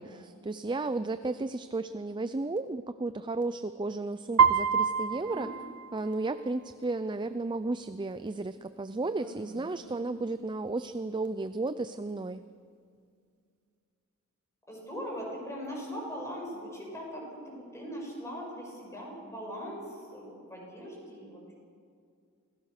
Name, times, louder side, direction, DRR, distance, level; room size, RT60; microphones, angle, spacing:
voice 1, 0.0-5.5 5.9-12.4, right 3 dB, 20° right, 12 dB, 0.4 m, -33 dB
Piano, 4.4-6.4, right 6 dB, 80° right, 0.6 m, -26 dB
voice 2, 9.2-10.1 14.7-21.5, equal, 15° left, -2 dB, 6.7 m, -41 dB
26.5 x 17.0 x 6.6 m, 2.2 s
head